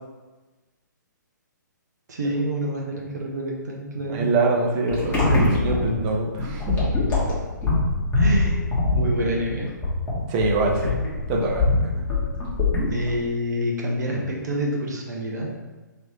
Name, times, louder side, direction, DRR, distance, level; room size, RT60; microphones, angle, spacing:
voice 1, 2.1-4.3 8.1-8.6 8.9-9.7 11.9-12.1 12.9-15.5, equal, 60° right, -1 dB, 0.9 m, -27 dB
voice 2, 4.1-6.9 10.3-11.0 11.3-11.9, right 2 dB, 25° right, -1 dB, 0.7 m, -24 dB
sound 1, 4.9-13.3, left 2 dB, 15° left, 1.2 m, -23 dB
3.3 x 3.1 x 4.3 m, 1.2 s
figure-of-eight pair, 125°, 10 cm